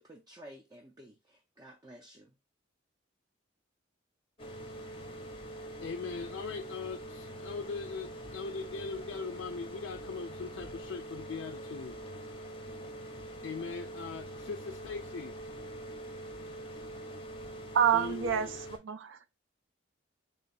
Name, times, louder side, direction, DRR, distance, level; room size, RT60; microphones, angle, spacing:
voice 1, 0.0-2.3, equal, 20° right, 0.4 m, -52 dB
sound 1, 4.4-18.8, right 1 dB, 25° left, 0.6 m, -44 dB
voice 2, 5.8-12.0 13.4-15.3 17.9-18.6, left 4 dB, 75° left, 0.4 m, -40 dB
voice 3, 17.7-18.5 18.8-19.3, right 8 dB, 80° right, 0.4 m, -27 dB
3.3 x 2.3 x 4.0 m
head